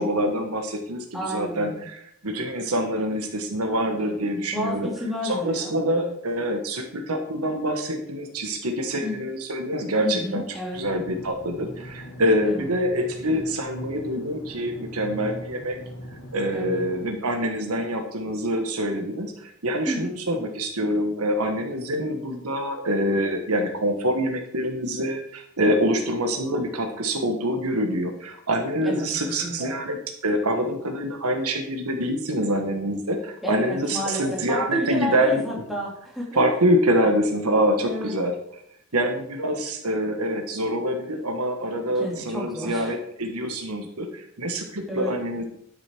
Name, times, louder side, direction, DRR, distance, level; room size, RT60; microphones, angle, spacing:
voice 1, 0.0-4.9 5.2-10.4 10.7-15.8 16.3-30.0 30.2-35.6 36.3-38.6 38.9-45.4, equal, 90° right, 4 dB, 1.5 m, -25 dB
voice 2, 1.1-1.8 4.5-6.1 9.0-9.2 10.0-10.8 12.5-12.7 16.5-16.8 19.9-20.1 28.8-29.1 29.4-29.8 33.4-36.4 37.8-38.1 41.9-42.9 44.9-45.2, equal, ahead, -3 dB, 2.6 m, -31 dB
sound 1, 10.7-17.1, equal, 80° left, 2.0 m, -41 dB
12.0 x 6.9 x 4.5 m, 0.70 s
head